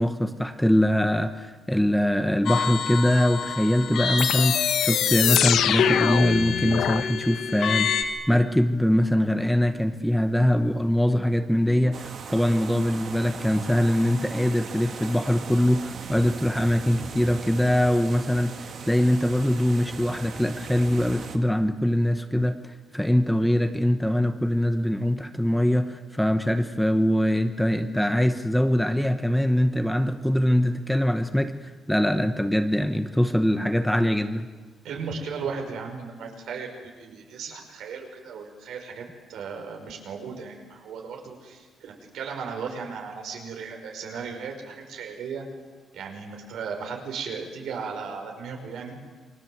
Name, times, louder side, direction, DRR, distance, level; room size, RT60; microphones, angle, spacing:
voice 1, 0.0-34.5, left 1 dB, ahead, 8 dB, 0.9 m, -23 dB
sound 1, 2.5-8.0, left 6 dB, 50° left, 2.8 m, -28 dB
sound 2, 4.2-7.0, left 10 dB, 70° left, 0.9 m, -24 dB
sound 3, 11.9-21.4, right 5 dB, 45° right, 2.3 m, -39 dB
voice 2, 34.8-45.4 45.9-49.0, right 5 dB, 70° right, 3 dB, 5.6 m, -36 dB
28.5 x 24.5 x 8.0 m, 1.4 s
cardioid pair, 180°, 0 cm